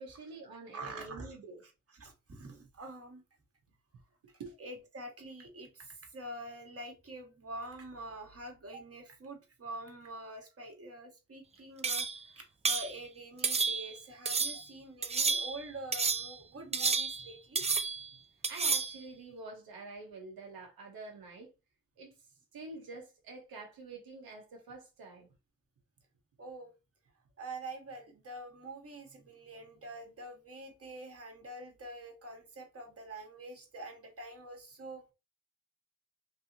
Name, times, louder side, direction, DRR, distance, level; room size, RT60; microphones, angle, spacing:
voice 1, 0.0-1.6 4.4-4.5 18.5-21.5 22.0-22.1 22.5-25.3, right 3 dB, 85° right, 0.8 m, -47 dB
voice 2, 0.7-1.4 1.6-3.2 4.6-17.6 26.4-26.7 27.4-35.1, right 1 dB, 40° right, 1.3 m, -46 dB
sound 1, 11.8-12.2 12.6-12.9 13.4-14.0 14.3-14.6 15.0-15.6 15.9-16.4 16.7-17.3 17.6-18.1 18.4-19.0, right 4 dB, 20° right, 0.3 m, -31 dB
3.4 x 2.7 x 2.6 m
cardioid pair, 45°, 35 cm